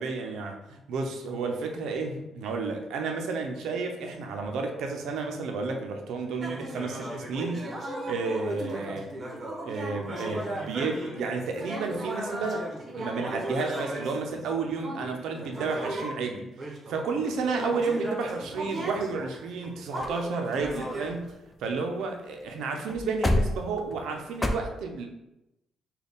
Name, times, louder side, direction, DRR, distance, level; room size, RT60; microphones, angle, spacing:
voice 1, 0.0-7.6 8.1-9.1 9.6-12.7 12.9-16.5 16.9-21.3 21.6-25.1, right 4 dB, 80° right, 4 dB, 0.5 m, -31 dB
sound 1, 6.4-16.2 16.6-21.3, right 1 dB, 45° right, 0.9 m, -36 dB
sound 2, 18.2-19.1 19.6-19.7 19.9-20.2 20.5-22.1 22.4-22.5 22.8-24.5, left 1 dB, 15° left, 0.4 m, -31 dB
3.9 x 2.3 x 3.5 m, 0.92 s
cardioid pair, 90°, 0 cm